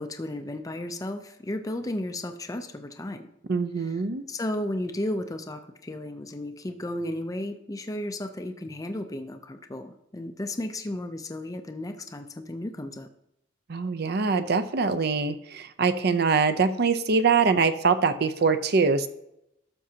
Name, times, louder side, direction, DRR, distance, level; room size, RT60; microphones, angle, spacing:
voice 1, 0.0-3.3 3.8-4.0 4.3-13.1, left 1 dB, 15° left, 6 dB, 0.5 m, -34 dB
voice 2, 3.5-4.2 13.7-19.1, right 4 dB, 55° right, 11 dB, 0.6 m, -23 dB
12.5 x 6.9 x 2.8 m, 0.82 s
head